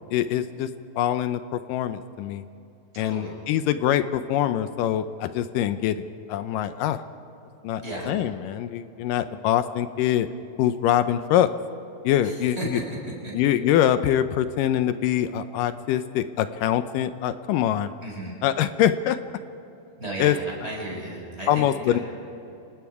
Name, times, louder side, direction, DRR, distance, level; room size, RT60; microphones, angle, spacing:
voice 1, 0.1-0.7 1.0-2.4 3.0-7.0 7.6-10.3 10.6-11.5 12.0-12.8 13.3-17.9 18.4-19.2 20.2-20.4 21.5-22.0, left 11 dB, 80° left, 11 dB, 2.1 m, -24 dB
voice 2, 2.9-3.3 7.8-8.1 12.2-12.6 18.0-18.3 20.0-22.0, right 1 dB, 15° right, -4 dB, 6.5 m, -35 dB
29.0 x 19.0 x 4.9 m, 2.7 s
omnidirectional pair, 4.2 m